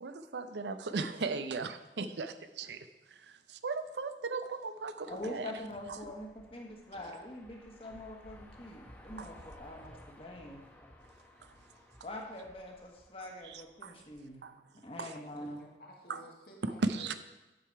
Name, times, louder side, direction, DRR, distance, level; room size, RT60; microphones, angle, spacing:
voice 1, 0.0-5.5 9.2-9.3 13.4-13.9 14.4-14.5 15.0-15.1 16.1-16.2 16.6-17.1, right 3 dB, 80° right, 10 dB, 0.6 m, -37 dB
voice 2, 5.1-10.6 12.0-14.4 14.8-15.6, left 1 dB, 30° left, 1 dB, 1.3 m, -44 dB
sound 1, 5.2-14.3, left 1 dB, 10° left, 0.8 m, -57 dB
voice 3, 15.2-17.2, equal, 55° left, 0 dB, 1.8 m, -54 dB
9.0 x 6.7 x 4.6 m, 1.1 s
head